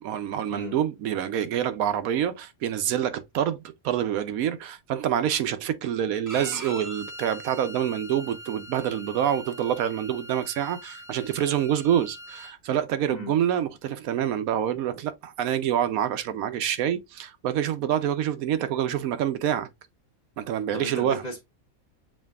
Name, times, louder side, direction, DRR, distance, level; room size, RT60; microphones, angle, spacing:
voice 1, 0.0-19.7 20.4-21.2, right 10 dB, 80° right, 1.0 m, -27 dB
Bowed string instrument, 6.3-12.5, right 1 dB, 30° right, 0.3 m, -42 dB
voice 2, 20.7-21.4, right 1 dB, 35° left, 1.0 m, -35 dB
7.3 x 2.6 x 2.3 m
omnidirectional pair, 1.5 m